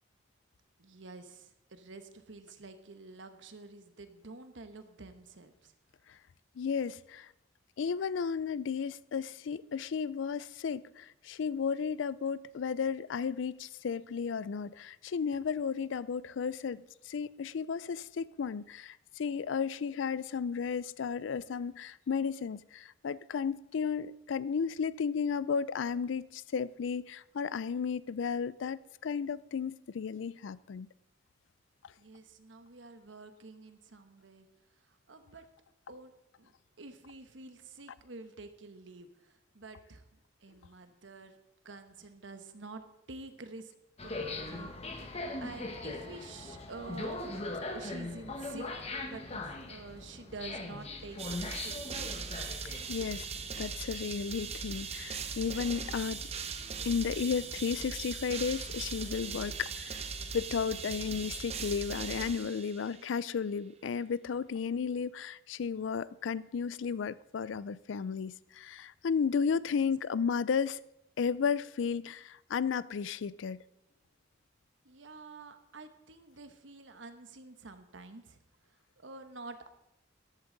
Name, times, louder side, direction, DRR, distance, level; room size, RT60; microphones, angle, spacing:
voice 1, 0.8-5.7 32.0-34.5 34.9-35.4 35.9-36.1 36.4-41.4 41.6-42.8 43.1-43.7 44.0-47.2 47.7-48.7 49.1-52.1 69.7-69.8 74.8-78.4 79.0-79.7, right 3 dB, 70° right, 1.1 m, -49 dB
voice 2, 6.6-7.3 7.8-30.9 52.9-53.3 53.6-56.2 56.8-60.0 60.3-70.8 71.2-73.6, left 6 dB, 75° left, 0.4 m, -33 dB
sound 1, 44.0-61.6, left 2 dB, 35° left, 1.3 m, -43 dB
sound 2, 51.2-63.1, right 5 dB, 35° right, 0.8 m, -40 dB
14.0 x 12.0 x 3.9 m
head